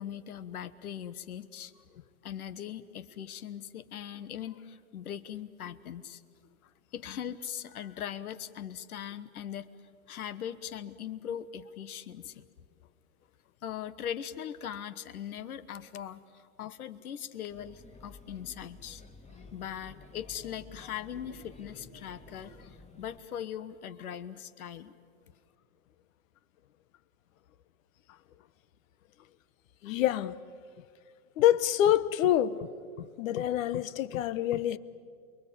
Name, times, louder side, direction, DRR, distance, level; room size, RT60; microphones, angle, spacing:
voice 1, 0.0-1.7 2.2-6.2 6.9-12.5 13.6-19.0 19.5-24.9, left 9 dB, 80° left, 1.3 m, -40 dB
Male speech man speaking / Child speech kid speaking / Chatter, 17.5-23.2, left 3 dB, 15° left, 2.1 m, -52 dB
voice 2, 29.8-30.3 31.4-32.7 33.0-34.8, left 11 dB, 65° left, 1.2 m, -26 dB
29.0 x 23.0 x 8.5 m
hypercardioid pair, 110°, 43 cm